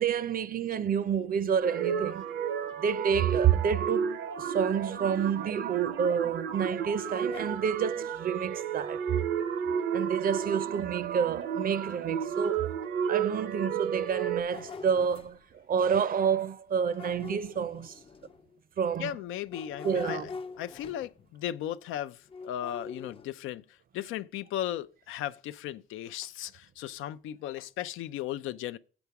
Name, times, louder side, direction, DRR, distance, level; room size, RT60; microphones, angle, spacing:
voice 1, 0.0-2.3 2.8-9.3 9.9-12.7 13.1-18.0 18.8-19.1 19.8-20.3, right 7 dB, 45° right, 0.6 m, -29 dB
sound 1, 1.6-14.4, right 8 dB, 75° right, 0.8 m, -32 dB
voice 2, 2.2-2.6 19.0-20.3 20.6-28.8, left 12 dB, 90° left, 0.5 m, -36 dB
sound 2, 6.8-8.2 10.5-10.6 11.1-11.2 11.9-12.0 12.5-12.6 14.1-15.4 16.8-18.6 19.4-21.4 22.3-23.3, left 5 dB, 30° left, 0.4 m, -44 dB
7.0 x 7.0 x 4.7 m
cardioid pair, 90°, 20 cm